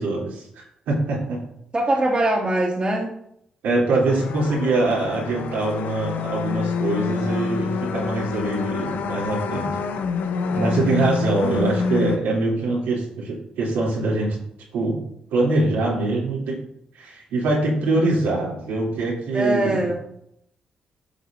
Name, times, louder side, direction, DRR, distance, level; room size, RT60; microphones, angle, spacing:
voice 1, 0.0-1.4 3.6-9.8 10.5-14.4 14.7-15.0 15.3-16.6 16.9-19.9, right 2 dB, 75° right, -5 dB, 3.0 m, -23 dB
voice 2, 1.7-3.1 19.3-20.0, right 1 dB, 30° right, -3 dB, 2.4 m, -22 dB
sound 1, 4.1-12.2, left 5 dB, 70° left, 0.7 m, -27 dB
12.5 x 6.5 x 2.6 m, 0.74 s
hypercardioid pair, 40°, 3 cm